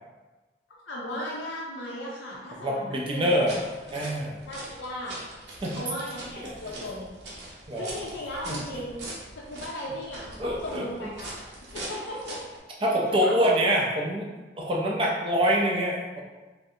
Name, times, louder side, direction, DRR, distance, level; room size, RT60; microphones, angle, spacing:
voice 1, 0.9-3.6 4.5-5.2 5.7-7.2 7.8-9.0 9.4-11.4 11.7-12.4 13.1-13.5, left 1 dB, 80° left, -4 dB, 0.5 m, -36 dB
voice 2, 2.6-3.5 3.9-4.4 5.6-5.8 7.7-7.9 8.5-8.6 10.4-10.8 12.8-14.3 14.6-16.2, equal, 30° right, -2 dB, 0.3 m, -25 dB
sound 1, 3.3-12.6, right 1 dB, 70° right, 0.7 m, -42 dB
3.1 x 2.5 x 2.6 m, 1.2 s
head